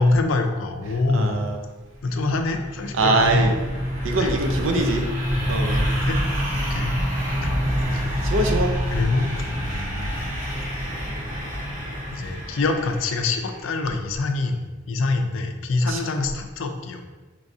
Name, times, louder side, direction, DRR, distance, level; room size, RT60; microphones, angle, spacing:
voice 1, 0.0-1.4 2.0-3.5 4.2-4.3 5.3-6.2 6.5-7.0 7.4-7.5 7.9-8.3 8.9-10.2 12.1-17.0, left 3 dB, 70° left, 5 dB, 0.4 m, -25 dB
voice 2, 1.1-1.6 3.0-3.5 4.0-5.1 5.5-5.8 8.2-8.7 15.9-16.0, right 2 dB, 70° right, 3 dB, 0.5 m, -22 dB
sound 1, 1.9-13.6, equal, 40° right, 0.9 m, -27 dB
4.6 x 3.1 x 2.6 m, 1.3 s
head